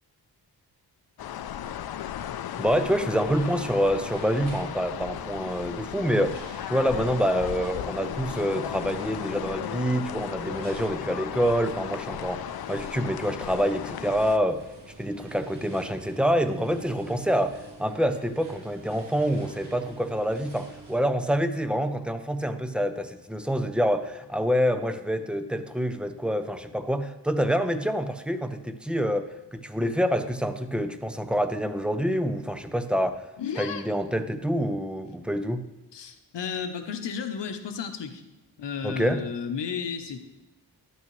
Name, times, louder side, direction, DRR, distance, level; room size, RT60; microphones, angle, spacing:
sound 1, 1.2-14.4, left 10 dB, 65° left, 0.5 m, -35 dB
voice 1, 2.6-14.6 15.0-33.2 33.6-35.7 38.8-39.2, equal, ahead, 9 dB, 0.5 m, -27 dB
sound 2, 3.3-21.0, right 2 dB, 80° right, 2.4 m, -49 dB
voice 2, 33.4-33.8 35.9-38.2 38.6-40.2, left 6 dB, 85° left, 7 dB, 0.9 m, -33 dB
12.0 x 8.5 x 3.1 m, 1.1 s
wide cardioid pair, 85°, 41 cm